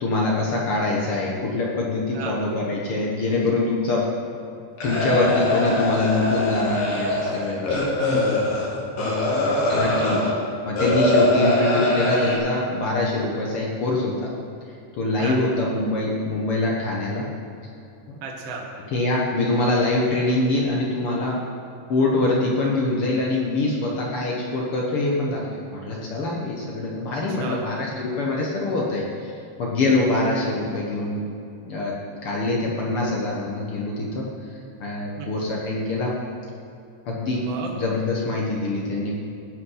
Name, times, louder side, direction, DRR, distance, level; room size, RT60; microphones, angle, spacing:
voice 1, 0.0-4.0 4.8-8.4 9.3-10.3 10.6-14.3 14.9-17.3 18.1-18.2 18.9-21.4 21.9-31.3 31.6-31.9 32.2-34.3 34.8-36.1 37.0-37.4 37.7-39.1, left 2 dB, 80° left, -3 dB, 1.2 m, -24 dB
sound 1, 4.8-10.3 10.8-12.4, left 1 dB, 60° left, 3.6 m, -22 dB
voice 2, 8.9-9.4 9.7-10.1 15.2-15.4 18.2-18.7 27.3-27.6 35.2-35.3 37.3-37.7, right 4 dB, 65° right, -1 dB, 1.5 m, -34 dB
18.0 x 6.1 x 5.6 m, 2.6 s
omnidirectional pair, 4.4 m